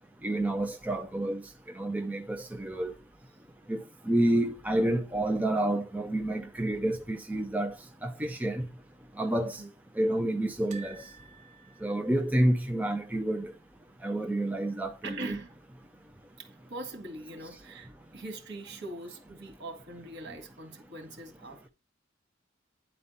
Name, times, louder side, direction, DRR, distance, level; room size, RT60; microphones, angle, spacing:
voice 1, 0.2-1.4 1.7-2.9 3.7-8.7 9.2-9.6 10.0-11.1 11.8-13.5 14.0-15.4, right 1 dB, 10° right, 0.4 m, -29 dB
sound 1, 10.7-13.8 14.0-14.2 14.5-14.6 15.8-16.3 16.9-17.0, right 5 dB, 35° right, 1.6 m, -53 dB
voice 2, 15.0-15.5 16.4-21.7, right 2 dB, 60° right, 2.0 m, -42 dB
9.7 x 4.3 x 4.1 m
head